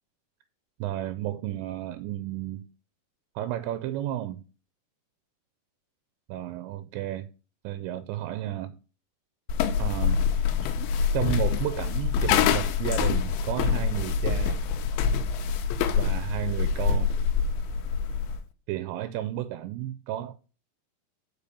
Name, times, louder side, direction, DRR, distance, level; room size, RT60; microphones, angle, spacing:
voice 1, 0.8-2.7 3.4-4.4 6.3-7.3 7.6-8.8 9.8-10.3 10.6-10.7 11.1-14.6 16.0-17.1 18.7-20.3, right 13 dB, 85° right, 2.7 m, -32 dB
sound 1, 9.5-18.4, left 6 dB, 85° left, 3.2 m, -25 dB
6.7 x 5.2 x 6.8 m
omnidirectional pair, 5.5 m